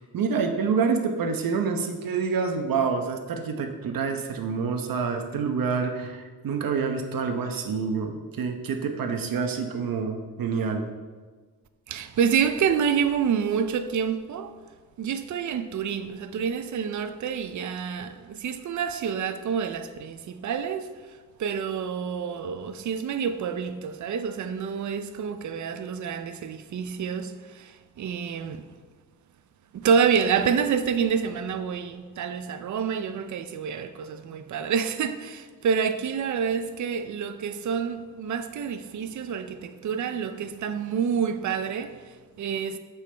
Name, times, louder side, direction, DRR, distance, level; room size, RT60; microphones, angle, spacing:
voice 1, 0.1-10.8, right 5 dB, 75° right, 0.9 m, -27 dB
voice 2, 11.9-14.6 15.0-28.7 29.7-42.8, right 7 dB, 55° right, 0.5 m, -28 dB
8.2 x 7.1 x 3.4 m
wide cardioid pair, 130°, 35 cm